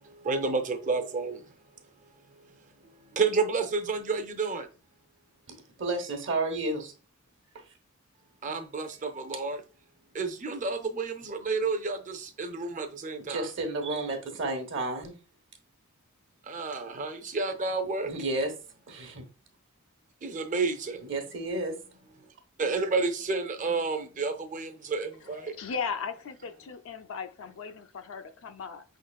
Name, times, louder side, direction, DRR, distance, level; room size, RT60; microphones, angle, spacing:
voice 1, 0.2-1.4 3.1-4.7 8.4-9.6 10.1-13.4 16.5-18.1 20.2-21.0 22.6-25.5, right 4 dB, 40° right, 0.6 m, -30 dB
voice 2, 5.8-6.9 7.5-7.7 13.3-15.2 18.0-18.5 18.9-19.2 21.0-21.8, right 2 dB, 60° right, 1.1 m, -31 dB
voice 3, 25.4-28.8, left 6 dB, 65° left, 0.5 m, -37 dB
5.1 x 3.8 x 2.3 m
head